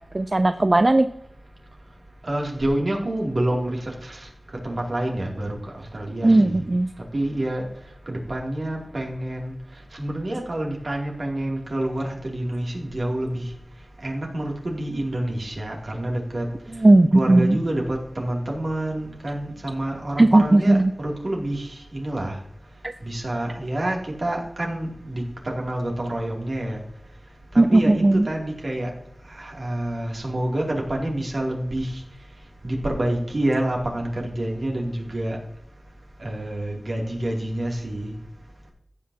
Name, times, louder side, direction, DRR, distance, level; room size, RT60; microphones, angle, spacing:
voice 1, 0.1-1.1 6.2-6.9 16.7-17.6 20.2-20.9 27.6-28.3, right 2 dB, 40° right, 10 dB, 0.4 m, -16 dB
voice 2, 2.2-4.3 4.6-6.7 7.1-7.7 8.1-9.6 9.9-13.5 14.0-16.5 17.1-22.4 23.0-26.8 27.5-28.9 29.3-32.0 32.6-35.4 36.2-38.2, right 1 dB, 65° right, -1 dB, 2.5 m, -28 dB
15.5 x 6.3 x 2.8 m, 0.75 s
wide cardioid pair, 55°, 0 cm